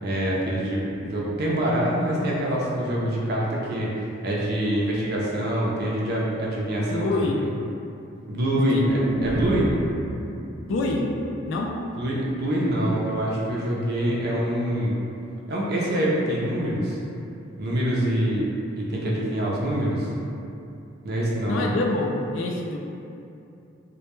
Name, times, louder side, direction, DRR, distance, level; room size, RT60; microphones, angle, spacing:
voice 1, 0.0-7.3 8.3-9.7 12.0-14.9 15.5-17.0 17.6-18.5 18.8-20.1 21.0-21.7, right 1 dB, 55° right, -4 dB, 0.5 m, -25 dB
voice 2, 6.9-7.4 8.6-8.8 9.2-9.5 10.7-11.1 11.5-11.8 21.5-22.8, left 2 dB, 70° left, 0 dB, 0.3 m, -26 dB
sound 1, 8.8-12.9 13.2-13.3, equal, 45° left, 0.7 m, -34 dB
2.1 x 2.1 x 2.9 m, 2.7 s
head